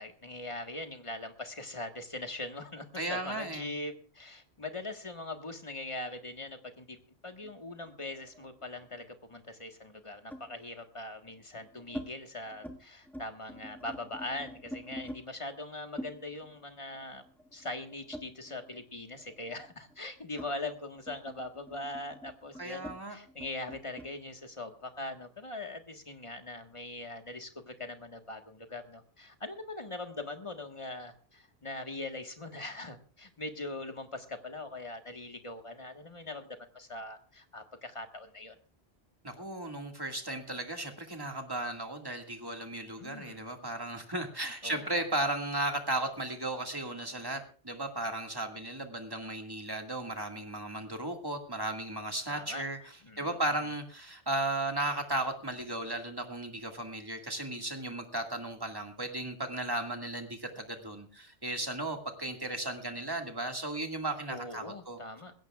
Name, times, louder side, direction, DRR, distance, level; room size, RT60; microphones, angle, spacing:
voice 1, 0.0-17.2 17.5-36.5 36.7-38.6 43.0-43.4 44.6-45.0 52.3-52.7 53.0-53.7 64.3-65.3, left 2 dB, 30° left, 5 dB, 1.6 m, -41 dB
voice 2, 3.0-3.7 22.6-23.2 39.2-52.8 53.2-65.0, right 2 dB, 20° right, 4 dB, 2.0 m, -35 dB
sound 1, 7.4-9.0 10.3-10.6 11.3-12.1 12.5-12.8 13.1-15.2 16.0-18.9 19.2-24.1, equal, ahead, 1.7 m, -46 dB
20.5 x 16.5 x 2.4 m, 0.37 s
omnidirectional pair, 1.1 m